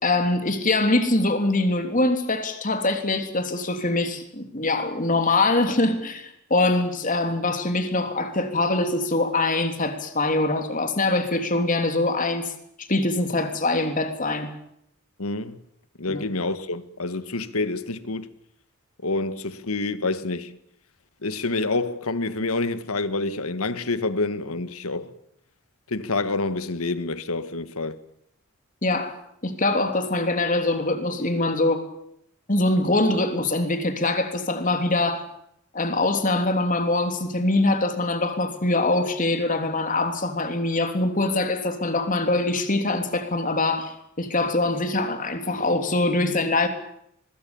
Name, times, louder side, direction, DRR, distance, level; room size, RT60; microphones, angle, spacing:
voice 1, 0.0-12.5 12.8-14.5 16.1-16.3 28.8-29.1 29.4-31.9 32.5-35.2 35.7-46.7, left 2 dB, 35° left, 3.3 m, -23 dB
voice 2, 15.2-15.6 16.0-18.3 19.0-20.6 21.2-25.1 25.9-28.0, left 3 dB, 80° left, 1.6 m, -27 dB
24.0 x 22.0 x 7.1 m
head